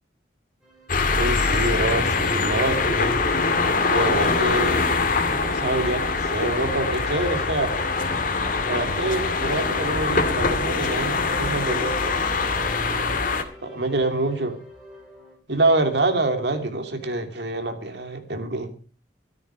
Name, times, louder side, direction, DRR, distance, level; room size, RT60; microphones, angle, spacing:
sound 1, 0.6-15.4, left 1 dB, 5° right, 6.2 m, -46 dB
sound 2, 0.9-13.4, left 4 dB, 50° left, 2.0 m, -23 dB
voice 1, 1.2-3.2 3.9-4.9 5.4-7.7 8.7-12.1 13.6-14.6 15.5-18.7, right 2 dB, 70° right, 6 dB, 2.9 m, -26 dB
14.0 x 13.0 x 5.0 m, 0.37 s
head